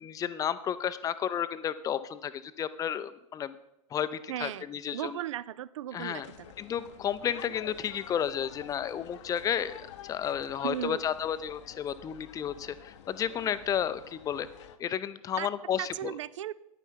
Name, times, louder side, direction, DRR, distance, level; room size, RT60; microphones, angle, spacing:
voice 1, 0.0-3.5 3.9-5.2 5.9-6.3 6.6-14.5 14.8-16.2, left 9 dB, 20° left, 14 dB, 0.5 m, -32 dB
voice 2, 4.3-4.7 4.9-6.5 10.6-11.0 15.4-15.5 15.8-16.5, right 12 dB, 60° right, 19 dB, 0.4 m, -36 dB
sound 1, 6.2-14.8, left 10 dB, 55° left, 0.7 m, -49 dB
9.9 x 8.9 x 4.5 m, 0.86 s
figure-of-eight pair, 90°, 18 cm